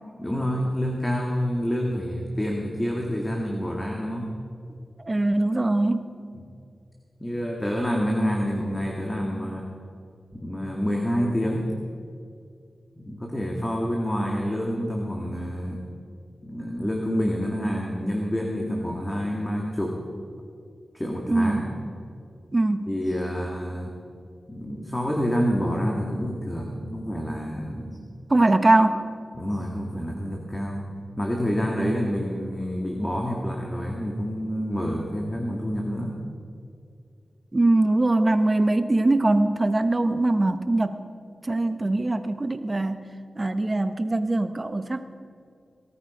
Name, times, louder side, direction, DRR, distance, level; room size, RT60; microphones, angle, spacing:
voice 1, 0.2-4.3 6.3-6.4 7.2-9.7 10.3-11.7 13.0-15.8 16.4-20.0 20.9-21.6 22.9-23.9 24.5-28.0 29.3-36.2, equal, 15° left, 0 dB, 2.0 m, -28 dB
voice 2, 5.0-6.1 21.3-21.7 22.5-22.9 28.3-29.0 37.5-41.0 41.4-43.0 43.3-45.0, right 2 dB, 35° right, 9 dB, 1.0 m, -22 dB
18.5 x 13.5 x 5.1 m, 2.3 s
cardioid pair, 65°, 0 cm